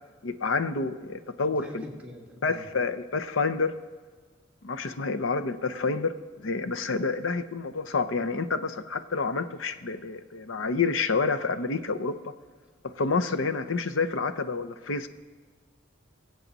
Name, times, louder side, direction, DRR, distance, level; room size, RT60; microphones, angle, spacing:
voice 1, 0.2-1.8 2.4-3.7 4.6-12.2 12.8-15.1, left 4 dB, 90° left, 10 dB, 0.7 m, -28 dB
voice 2, 1.6-2.7, left 1 dB, 5° right, -3 dB, 2.1 m, -43 dB
22.5 x 8.2 x 4.1 m, 1.5 s
head